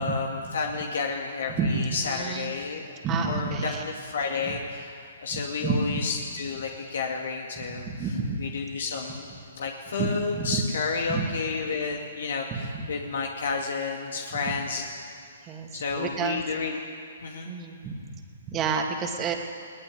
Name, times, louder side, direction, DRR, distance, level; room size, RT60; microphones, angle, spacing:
voice 1, 0.0-3.0 3.3-5.0 5.2-9.2 9.6-14.9 15.7-16.8 17.2-17.5, left 4 dB, 70° left, 1 dB, 2.3 m, -31 dB
voice 2, 1.6-2.5 3.0-3.8 4.4-4.6 5.3-6.0 7.6-8.4 10.0-10.6 11.1-11.3 12.5-12.9 15.5-15.7 16.0-16.4 17.5-18.0 18.5-19.3, right 4 dB, 25° right, 3 dB, 2.7 m, -29 dB
20.5 x 18.5 x 9.4 m, 2.4 s
hypercardioid pair, 140°, 0 cm